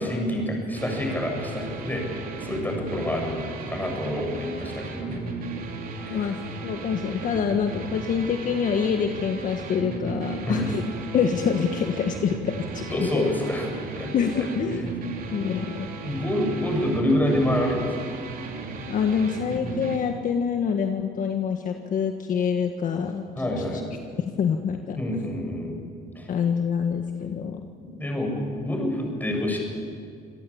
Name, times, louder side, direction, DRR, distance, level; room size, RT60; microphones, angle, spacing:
voice 1, 0.0-2.1 2.4-5.2 6.0-6.3 10.5-10.7 12.9-13.7 13.9-14.1 16.0-18.1 23.4-23.8 25.0-25.8 26.2-26.3 27.8-29.6, left 1 dB, 10° left, 1 dB, 7.4 m, -27 dB
sound 1, 0.8-20.0, right 3 dB, 60° right, 3.5 m, -35 dB
voice 2, 6.6-10.8 11.1-13.3 14.1-14.8 15.3-15.9 18.9-23.2 23.6-23.7 24.4-25.0 26.3-27.7, left 7 dB, 50° left, 5 dB, 1.6 m, -26 dB
27.0 x 17.5 x 8.7 m, 2.2 s
cardioid pair, 110°, 17 cm